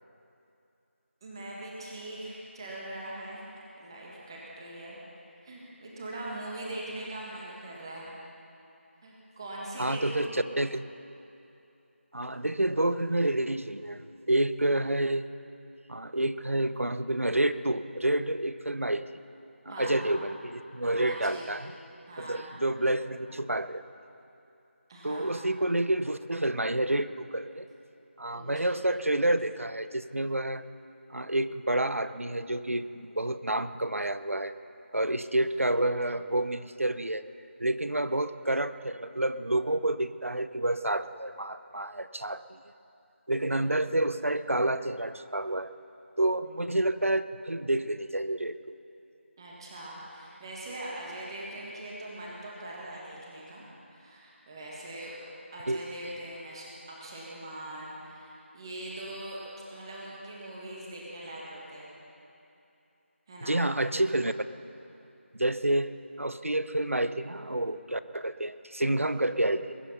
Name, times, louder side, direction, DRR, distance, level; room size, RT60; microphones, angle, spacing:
voice 1, 1.2-3.4 3.8-5.0 5.4-8.1 9.0-10.3 19.7-20.2 20.9-21.5 22.1-22.5 24.9-25.5 28.3-28.8 43.5-43.7 49.4-55.1 55.5-59.4 59.7-61.9 63.3-63.6, right 1 dB, 20° right, -4 dB, 1.9 m, -41 dB
voice 2, 9.8-10.3 10.6-10.8 12.1-15.3 15.9-19.0 19.7-21.7 22.2-23.8 25.0-27.7 28.2-30.6 31.1-34.5 34.9-37.2 37.6-42.6 43.3-45.7 46.2-48.6 55.7-55.8 63.4-64.3 65.3-65.9 66.2-69.8, right 1 dB, 85° right, 12 dB, 0.7 m, -29 dB
21.5 x 10.0 x 5.7 m, 2.7 s
figure-of-eight pair, 165°, 7 cm